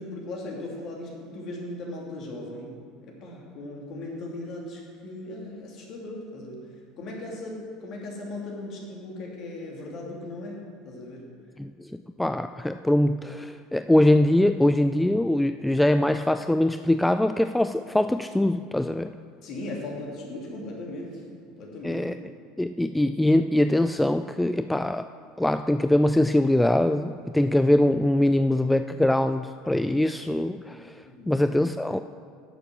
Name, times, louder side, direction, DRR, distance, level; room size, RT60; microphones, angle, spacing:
voice 1, 0.0-6.6 7.0-11.2 19.4-21.2 21.5-22.1 31.0-31.3, left 2 dB, 45° left, -1 dB, 2.8 m, -38 dB
voice 2, 11.6-19.1 21.8-22.2 22.6-25.0 25.4-32.0, left 1 dB, 5° left, 10 dB, 0.3 m, -23 dB
11.0 x 6.8 x 6.1 m, 2.2 s
figure-of-eight pair, 70°, 0 cm